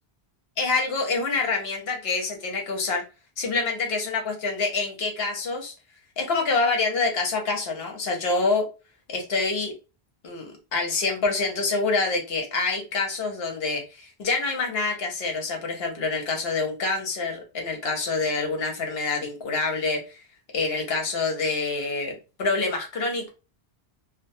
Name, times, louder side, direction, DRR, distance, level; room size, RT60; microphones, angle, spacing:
voice 1, 0.6-3.0 3.4-5.7 6.2-8.7 9.1-9.7 10.2-20.2 20.5-23.3, left 3 dB, 70° left, 1 dB, 1.0 m, -26 dB
2.5 x 2.2 x 2.6 m, 0.30 s
omnidirectional pair, 1.1 m